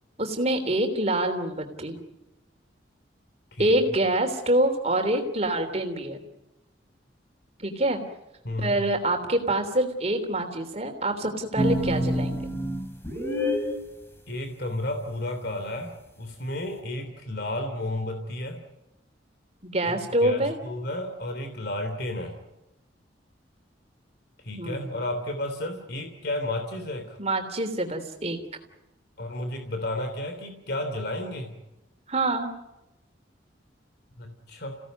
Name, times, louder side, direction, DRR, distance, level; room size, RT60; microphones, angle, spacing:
voice 1, 0.2-2.0 3.6-6.2 7.6-8.0 8.6-12.5 19.6-20.6 24.5-24.9 27.2-28.4 32.1-32.5, right 1 dB, 35° right, 5 dB, 3.3 m, -26 dB
sound 1, 11.6-13.8, equal, 15° left, 2.9 m, -26 dB
voice 2, 14.3-18.6 19.8-22.3 24.4-27.2 29.2-31.5 34.2-34.8, left 1 dB, 60° left, 6 dB, 3.1 m, -32 dB
29.0 x 17.0 x 9.3 m, 0.97 s
head